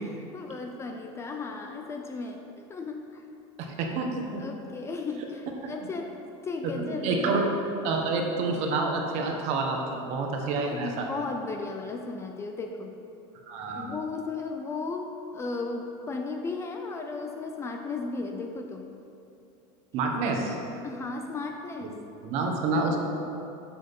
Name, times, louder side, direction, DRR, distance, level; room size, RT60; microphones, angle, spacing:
voice 1, 0.1-3.2 4.4-7.4 10.6-13.0 13.8-19.0 20.2-20.3 20.8-21.9, left 3 dB, 20° left, 3 dB, 0.4 m, -35 dB
voice 2, 3.6-4.4 5.6-5.7 6.7-7.5 7.8-11.1 13.5-13.9 19.9-20.5 22.2-23.0, right 3 dB, 50° right, 2 dB, 1.2 m, -28 dB
9.6 x 7.6 x 3.7 m, 2.7 s
supercardioid pair, 155°, 15 cm